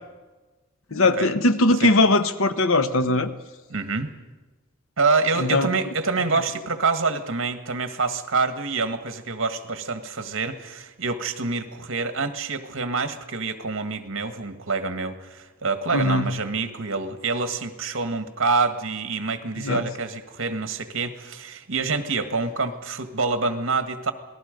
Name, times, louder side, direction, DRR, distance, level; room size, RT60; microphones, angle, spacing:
voice 1, 0.9-3.3 5.4-5.7 15.9-16.3 19.6-19.8, left 2 dB, 75° left, 10 dB, 1.1 m, -20 dB
voice 2, 3.7-4.1 5.0-24.1, right 4 dB, 65° right, 8 dB, 1.6 m, -26 dB
27.5 x 19.0 x 5.3 m, 1.3 s
head